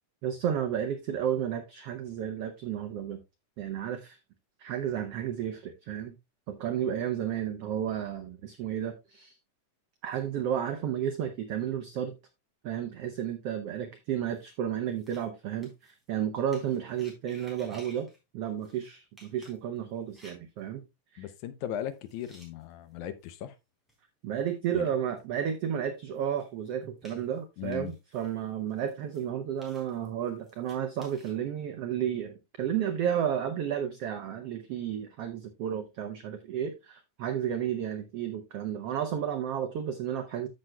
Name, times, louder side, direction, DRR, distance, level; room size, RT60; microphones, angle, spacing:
voice 1, 0.2-3.2 3.6-4.2 4.6-6.1 6.5-9.4 10.0-12.1 12.6-18.1 18.3-20.8 21.1-21.2 24.2-40.5, right 9 dB, 85° right, 1.3 m, -32 dB
sound 1, 14.3-14.5 14.9-15.2 15.6-16.1 16.5-18.2 18.5-18.9 19.2-20.6 21.2-21.3 21.9-22.8 23.2-23.3 23.9-24.0 24.6-24.7 25.2-25.3 25.7-25.8 26.1-28.4 28.7-29.2 29.6-31.3, equal, ahead, 3.4 m, -56 dB
voice 2, 21.2-23.6 24.7-24.9 27.6-27.9, left 10 dB, 80° left, 1.9 m, -37 dB
14.0 x 6.3 x 2.2 m
omnidirectional pair, 3.7 m